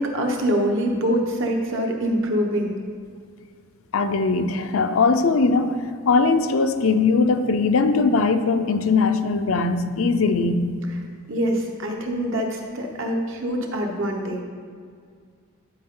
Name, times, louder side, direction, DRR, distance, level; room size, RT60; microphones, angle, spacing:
voice 1, 0.0-2.8 11.3-14.4, equal, 65° right, 1 dB, 1.1 m, -24 dB
voice 2, 3.9-5.8 6.1-10.7, left 4 dB, 70° left, 8 dB, 0.5 m, -20 dB
12.0 x 4.6 x 3.8 m, 2.1 s
head